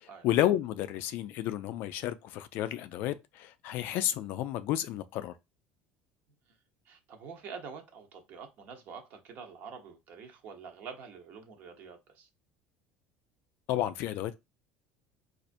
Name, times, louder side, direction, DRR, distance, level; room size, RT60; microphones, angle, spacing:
voice 1, 0.0-5.3 13.7-14.4, left 12 dB, 55° left, 0.3 m, -31 dB
voice 2, 6.8-12.3, right 6 dB, 45° right, 0.8 m, -46 dB
4.2 x 2.5 x 2.5 m
cardioid pair, 155°, 4 cm